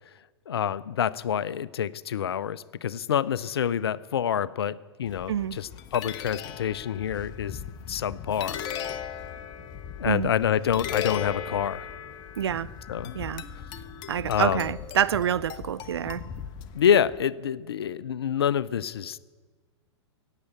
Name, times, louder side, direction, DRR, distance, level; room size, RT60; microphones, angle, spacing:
voice 1, 0.5-7.6 7.9-8.6 10.0-11.9 12.9-13.1 14.3-14.7 16.7-19.2, left 9 dB, 60° left, 0.5 m, -27 dB
sound 1, 5.1-17.2, left 8 dB, 30° left, 0.9 m, -38 dB
voice 2, 12.4-12.7 13.1-13.4 14.1-16.2, right 9 dB, 60° right, 0.4 m, -27 dB
15.0 x 9.0 x 8.5 m
figure-of-eight pair, 105°, 15 cm